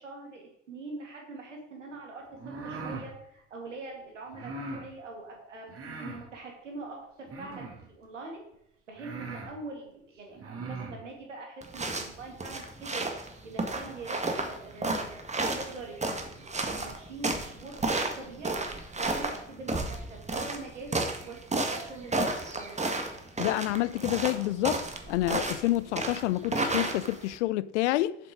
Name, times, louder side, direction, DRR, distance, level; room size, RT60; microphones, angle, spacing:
voice 1, 0.0-5.7 6.0-8.4 8.9-13.1 13.4-23.1, right 3 dB, 85° right, 2.3 m, -43 dB
sound 1, 2.3-3.1 4.3-4.9 5.7-6.3 7.3-7.9 8.5-8.6 9.0-9.5 10.3-11.0, right 3 dB, 40° right, 2.7 m, -39 dB
sound 2, 11.6-27.4, right 2 dB, 20° right, 1.7 m, -32 dB
voice 2, 23.4-24.8 25.1-28.2, left 16 dB, 75° left, 0.5 m, -28 dB
7.6 x 6.8 x 5.1 m
figure-of-eight pair, 60°, 36 cm